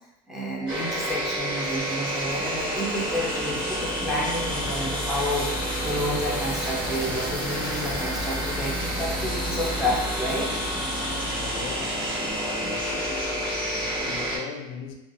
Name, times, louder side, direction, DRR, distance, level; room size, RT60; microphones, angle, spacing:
voice 1, 0.3-10.5, left 1 dB, ahead, 0.4 m, -30 dB
sound 1, 0.7-14.4, equal, 30° right, 1.3 m, -29 dB
voice 2, 11.4-13.4 13.7-14.9, left 6 dB, 80° left, 0.4 m, -40 dB
2.5 x 2.2 x 2.5 m
cardioid pair, 165°, 17 cm